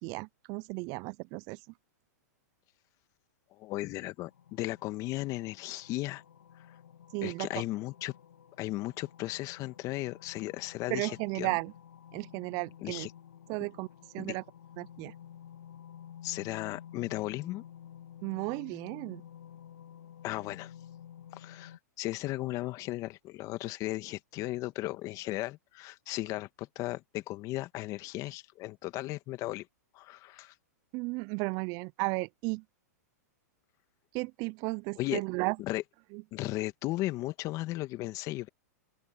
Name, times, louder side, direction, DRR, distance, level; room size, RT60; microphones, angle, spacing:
voice 1, 0.0-1.6 7.1-7.5 10.9-11.7 12.1-13.1 13.5-13.9 14.1-14.4 14.8-15.1 18.2-19.2 30.9-32.6 34.1-35.6 36.1-36.2, right 28 dB, 40° right, 0.4 m, -34 dB
voice 2, 3.5-6.2 6.6-6.7 7.2-8.1 8.6-11.6 12.8-13.1 14.2-14.4 16.2-17.6 20.2-20.7 21.3-29.7 29.9-30.5 35.0-35.2 35.6-35.8 36.3-38.5, left 18 dB, 40° left, 2.0 m, -36 dB
sound 1, 4.2-21.8, left 9 dB, 85° left, 1.5 m, -52 dB
open air
hypercardioid pair, 120°, 9 cm